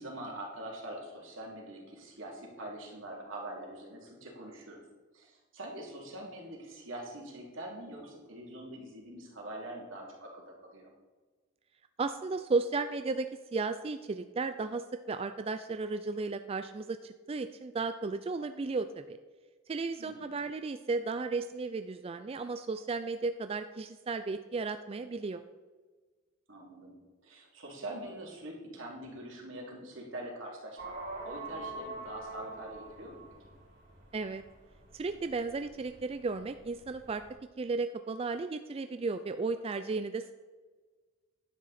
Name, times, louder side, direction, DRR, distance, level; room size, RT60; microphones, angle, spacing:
voice 1, 0.0-4.8 5.1-10.9 20.0-20.4 26.5-27.0 27.2-30.9 31.2-33.2, right 1 dB, 80° right, -2 dB, 3.0 m, -44 dB
voice 2, 12.0-19.2 19.7-25.4 34.1-34.4 34.9-37.2 37.6-40.3, right 3 dB, 30° right, 9 dB, 0.4 m, -34 dB
sound 1, 30.8-37.3, right 2 dB, 55° right, 4.0 m, -45 dB
11.0 x 9.2 x 4.2 m, 1.4 s
head